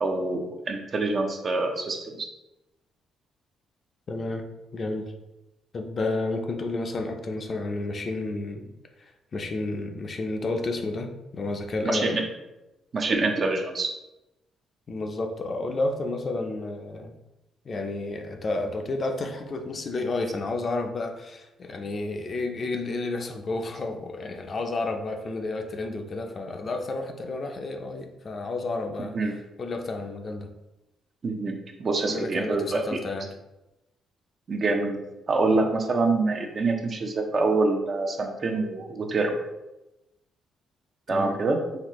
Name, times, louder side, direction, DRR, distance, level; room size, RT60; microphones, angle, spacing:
voice 1, 0.0-2.3 11.8-12.2 12.9-13.9 29.0-29.3 31.2-33.0 34.5-35.0 35.3-39.4 41.1-41.6, right 3 dB, 45° right, 3 dB, 0.6 m, -26 dB
voice 2, 4.1-4.5 4.7-5.1 5.7-8.7 9.0-12.2 14.9-17.1 17.6-29.2 29.6-30.5 32.1-33.3 41.1-41.3, left 2 dB, 45° left, 4 dB, 0.5 m, -31 dB
4.0 x 2.6 x 3.0 m, 0.97 s
cardioid pair, 90°, 0 cm